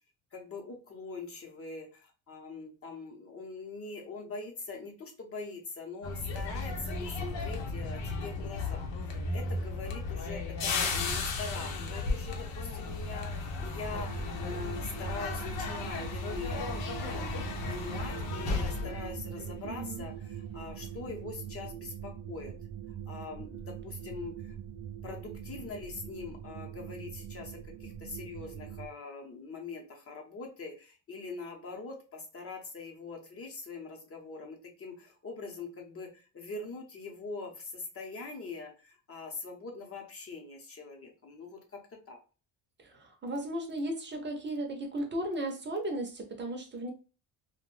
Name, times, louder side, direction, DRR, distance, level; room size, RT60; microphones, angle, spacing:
voice 1, 0.3-17.3 17.7-22.5 23.1-24.5 25.0-42.2, left 4 dB, 30° left, 2 dB, 0.8 m, -43 dB
sound 1, 6.0-20.0 20.3-20.6, left 3 dB, 85° left, 0.8 m, -35 dB
sound 2, 13.9-28.9, right 9 dB, 70° right, 0.6 m, -42 dB
voice 2, 19.7-20.0 42.8-46.9, right 1 dB, 25° right, 3 dB, 0.6 m, -35 dB
2.5 x 2.2 x 3.0 m, 0.35 s
cardioid pair, 140°, 43 cm